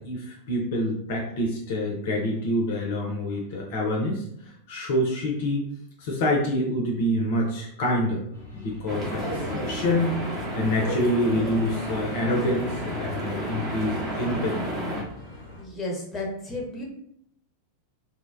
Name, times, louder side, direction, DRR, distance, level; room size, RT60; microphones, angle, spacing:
voice 1, 0.0-5.6 6.0-8.3 8.5-10.2 10.5-14.6, left 1 dB, 50° left, 0 dB, 0.4 m, -26 dB
sound 1, 8.3-15.6, left 1 dB, 75° right, 0.9 m, -45 dB
sound 2, 8.9-15.0, equal, 30° right, 0.8 m, -31 dB
voice 2, 15.6-16.8, left 2 dB, 15° left, -1 dB, 0.7 m, -33 dB
2.6 x 2.1 x 2.3 m, 0.70 s
figure-of-eight pair, 90°, 0 cm